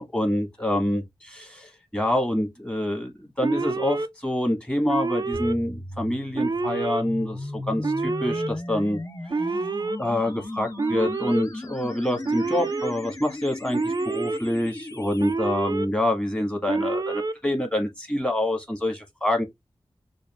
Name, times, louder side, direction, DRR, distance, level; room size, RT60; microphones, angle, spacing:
voice 1, 0.0-9.0 9.5-9.6 10.0-19.4, left 1 dB, 10° left, 1.6 m, -26 dB
Alarm, 3.4-4.1 4.9-5.5 6.3-7.0 7.8-8.5 9.3-10.0 10.8-11.4 12.2-12.9 13.7-14.4 15.2-15.9 16.7-17.3, right 3 dB, 40° right, 0.4 m, -27 dB
sound 1, 5.3-15.3, left 1 dB, 35° left, 0.8 m, -36 dB
6.3 x 2.5 x 2.4 m
wide cardioid pair, 70°, 10 cm